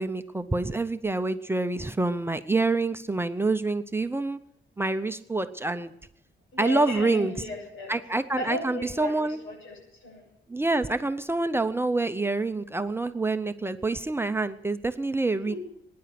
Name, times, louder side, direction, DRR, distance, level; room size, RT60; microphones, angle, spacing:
voice 1, 0.0-4.4 4.8-5.9 6.6-7.3 7.9-9.4 10.5-15.6, right 3 dB, 10° right, 9 dB, 0.6 m, -27 dB
voice 2, 6.5-7.9 8.4-10.2 15.4-15.6, left 1 dB, 85° left, 1 dB, 7.8 m, -36 dB
22.0 x 10.5 x 5.9 m, 0.75 s
cardioid pair, 130°, 20 cm